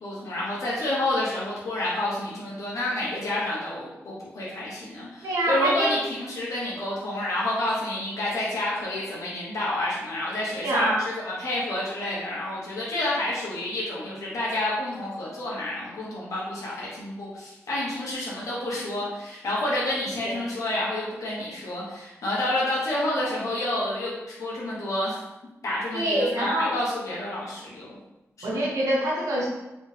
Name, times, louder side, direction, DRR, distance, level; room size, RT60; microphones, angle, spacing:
voice 1, 0.0-11.0 11.2-25.2 25.6-28.0 28.4-28.5, left 1 dB, 75° left, -6 dB, 0.9 m, -29 dB
voice 2, 5.2-5.9 10.6-11.0 20.2-20.4 25.9-26.7 28.4-29.5, right 1 dB, 80° right, -4 dB, 1.0 m, -25 dB
3.1 x 2.8 x 3.2 m, 0.95 s
wide cardioid pair, 90°, 5 cm